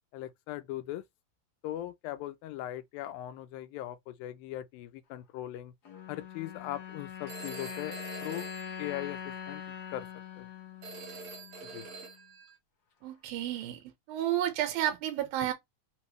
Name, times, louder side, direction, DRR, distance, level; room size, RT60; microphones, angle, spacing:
voice 1, 0.1-1.0 1.6-5.7 6.1-8.0 8.2-8.5 8.8-9.6 9.9-10.1 10.4-10.5 11.6-11.9, left 14 dB, 85° left, 2.4 m, -39 dB
sound 1, 5.8-12.3, left 8 dB, 65° left, 0.9 m, -43 dB
Telephone, 7.3-9.6 10.8-12.5, right 3 dB, 50° right, 1.8 m, -46 dB
voice 2, 13.0-15.5, right 12 dB, 85° right, 2.7 m, -31 dB
5.8 x 2.9 x 3.1 m
omnidirectional pair, 4.1 m